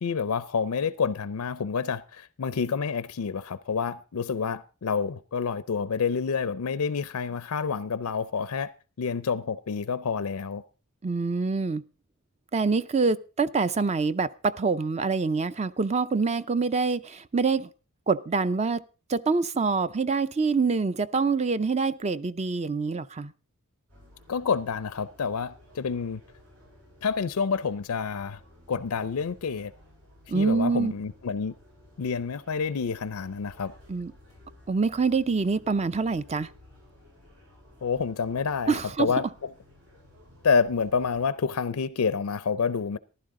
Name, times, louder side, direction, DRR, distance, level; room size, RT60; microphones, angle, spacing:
voice 1, 0.0-8.7 9.0-10.6 24.3-26.2 27.0-28.4 28.7-29.7 30.3-31.5 32.0-33.7 37.8-39.5 40.4-43.0, left 5 dB, 85° left, 0.5 m, -28 dB
voice 2, 11.0-11.8 12.5-17.7 18.1-18.8 19.1-23.3 30.3-30.9 33.9-34.1 34.7-36.5 38.7-39.1, right 4 dB, 30° right, 0.5 m, -25 dB
sound 1, 23.9-41.2, left 1 dB, 75° right, 7.6 m, -55 dB
14.5 x 11.5 x 3.7 m
head